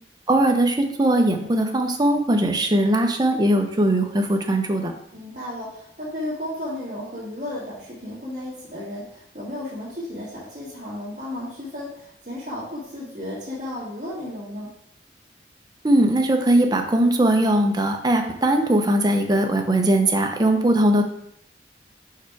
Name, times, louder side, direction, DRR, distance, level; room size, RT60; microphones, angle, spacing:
voice 1, 0.3-4.9 15.8-21.0, right 1 dB, 25° right, 4 dB, 0.7 m, -20 dB
voice 2, 5.1-14.7, left 1 dB, 45° right, -10 dB, 1.6 m, -34 dB
4.8 x 4.6 x 4.7 m, 0.73 s
head